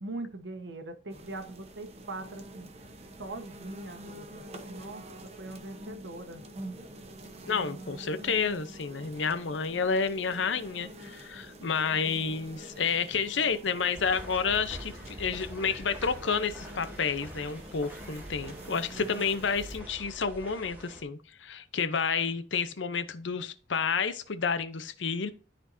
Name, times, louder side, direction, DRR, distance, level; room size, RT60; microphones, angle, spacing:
voice 1, 0.0-2.7 3.2-6.4, right 2 dB, 70° right, 1.1 m, -41 dB
sound 1, 1.1-19.8, right 1 dB, 35° right, 0.9 m, -47 dB
voice 2, 7.5-25.3, left 5 dB, 85° left, 0.7 m, -30 dB
sound 2, 13.9-21.0, equal, 10° right, 2.2 m, -45 dB
13.0 x 4.4 x 2.6 m
head